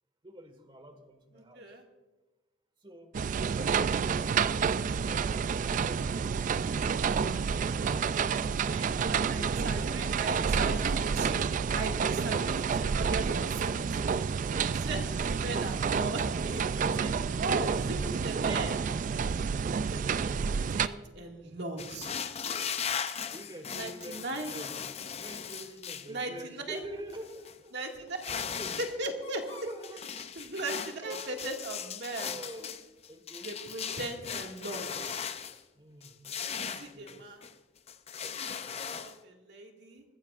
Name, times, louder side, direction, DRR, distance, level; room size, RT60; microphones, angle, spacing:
voice 1, 0.2-1.6 2.8-3.1 3.5-7.1 7.4-8.9 23.3-24.8 25.2-27.8 28.5-28.8 29.4-30.0 30.8-31.3 32.2-32.8 33.1-33.6 35.7-36.3 36.7-37.4, right 1 dB, 25° right, 7 dB, 1.5 m, -47 dB
voice 2, 1.4-1.8 8.7-14.0 14.7-18.8 19.9-22.2 23.7-24.6 26.1-26.8 27.7-28.5 28.8-29.5 30.4-32.4 33.4-35.2 36.6-37.4 38.5-38.6 39.0-40.0, right 2 dB, 60° right, 2 dB, 2.0 m, -38 dB
sound 1, 3.1-20.9, right 6 dB, 40° right, 0.3 m, -29 dB
sound 2, 21.8-26.1 26.7-26.8 27.1-27.6 28.1-29.0 29.2-35.6 36.0-37.5 37.9-39.2, left 7 dB, 30° left, 0.5 m, -38 dB
22.0 x 15.0 x 2.5 m, 1.1 s
head